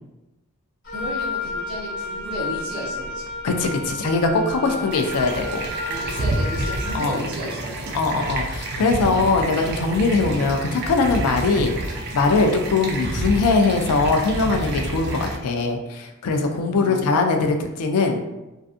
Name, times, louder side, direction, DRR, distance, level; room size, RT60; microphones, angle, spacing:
Wind instrument woodwind instrument, 0.8-7.1, left 2 dB, 50° left, 0.9 m, -31 dB
voice 1, 0.9-3.2 4.6-4.9 5.9-7.9 9.0-9.2 16.7-17.0, right 1 dB, 20° right, -9 dB, 0.7 m, -33 dB
voice 2, 3.4-5.6 6.9-7.2 7.9-18.2, left 3 dB, 85° left, 4 dB, 0.4 m, -21 dB
sound 1, 4.9-15.4, right 2 dB, 45° right, 0.3 m, -29 dB
2.4 x 2.3 x 2.4 m, 1.0 s
head